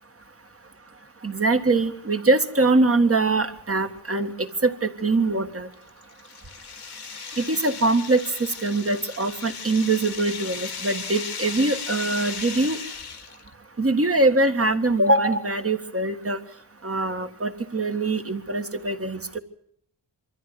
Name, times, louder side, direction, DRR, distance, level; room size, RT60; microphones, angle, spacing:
voice 1, 1.2-5.7 7.4-8.2 8.6-12.8 13.8-16.4 16.8-19.4, right 2 dB, 30° right, 7 dB, 1.8 m, -23 dB
sound 1, 5.7-13.5, left 6 dB, 60° left, 1.5 m, -36 dB
23.5 x 14.0 x 9.4 m, 0.66 s
wide cardioid pair, 85°, 44 cm